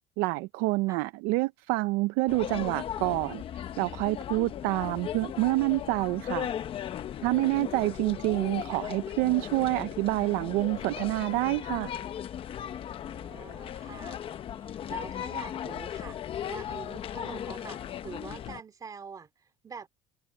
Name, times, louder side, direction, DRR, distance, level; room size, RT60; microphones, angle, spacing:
voice 1, 0.2-6.5 7.2-11.9, right 22 dB, 85° right, 0.6 m, -27 dB
sound 1, 2.3-18.6, left 10 dB, 40° left, 0.9 m, -37 dB
voice 2, 7.4-8.1 13.0-16.2 16.5-19.9, right 5 dB, 25° right, 2.8 m, -46 dB
cardioid pair, 135°, 14 cm